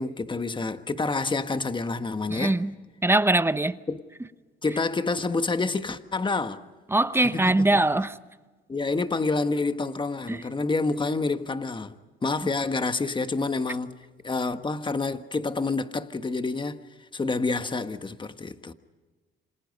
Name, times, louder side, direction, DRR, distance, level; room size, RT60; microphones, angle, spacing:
voice 1, 0.0-2.6 3.9-4.0 4.6-6.6 7.2-7.8 8.7-11.9 12.2-13.9 14.2-16.8 17.1-18.7, left 3 dB, 25° left, 1.4 m, -28 dB
voice 2, 2.3-2.7 3.0-3.8 6.9-8.1 10.3-10.4, right 2 dB, 10° right, 0.9 m, -22 dB
28.5 x 26.5 x 5.4 m
cardioid pair, 90°, 20 cm